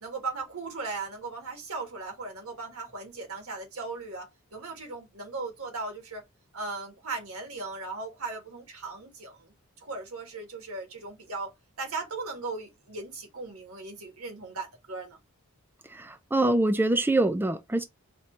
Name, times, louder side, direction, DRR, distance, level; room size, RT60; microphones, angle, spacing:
voice 1, 0.0-6.2 6.5-11.5 11.8-15.2, right 3 dB, 75° right, 1.8 m, -37 dB
voice 2, 15.9-17.8, right 2 dB, 10° right, 0.4 m, -25 dB
4.3 x 2.7 x 4.5 m
head